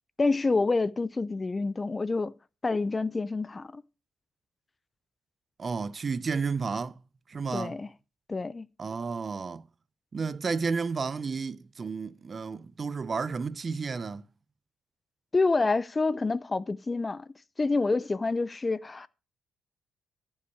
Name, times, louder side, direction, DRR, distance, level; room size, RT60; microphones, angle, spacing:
voice 1, 0.2-2.4 2.6-3.8 7.5-7.9 8.3-8.7 15.3-17.3 17.6-19.1, left 3 dB, 25° left, 0.6 m, -27 dB
voice 2, 5.6-7.0 7.3-7.8 8.8-9.7 10.1-14.2, right 5 dB, 35° right, 0.6 m, -32 dB
14.0 x 5.6 x 6.5 m
cardioid pair, 90°, 0 cm